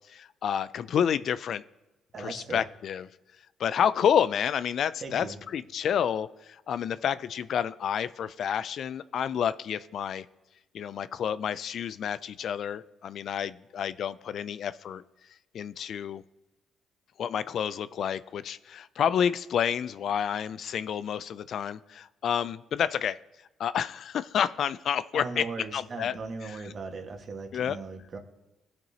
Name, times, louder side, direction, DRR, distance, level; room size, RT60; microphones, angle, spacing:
voice 1, 0.1-1.6 2.2-3.1 3.6-5.3 5.5-10.3 10.7-15.0 15.5-16.2 17.2-23.2 23.6-26.2 27.5-27.8, left 8 dB, 65° left, 16 dB, 0.3 m, -29 dB
voice 2, 2.1-2.6 5.0-5.4 25.1-28.2, right 4 dB, 50° right, 4 dB, 1.5 m, -38 dB
17.5 x 6.0 x 2.8 m, 1.0 s
supercardioid pair, 70°, 0 cm